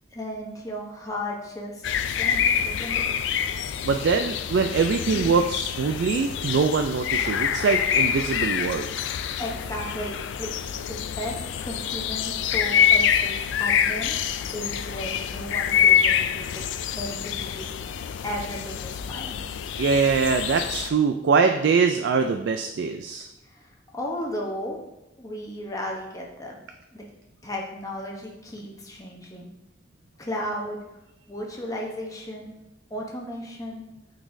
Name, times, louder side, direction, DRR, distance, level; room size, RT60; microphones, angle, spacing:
voice 1, 0.1-1.9 2.2-3.1 5.1-5.4 9.4-10.5 10.9-14.2 14.5-16.6 16.9-17.7 18.2-19.4 23.4-24.8 25.2-26.6 26.9-27.1 27.4-29.5 30.2-30.8 31.3-32.5 32.9-33.8, equal, 20° left, -1 dB, 0.9 m, -35 dB
sound 1, 1.8-20.9, left 8 dB, 75° left, 0.3 m, -26 dB
voice 2, 3.8-8.9 19.8-23.3, right 5 dB, 70° right, 6 dB, 0.3 m, -23 dB
8.9 x 4.1 x 2.6 m, 0.94 s
head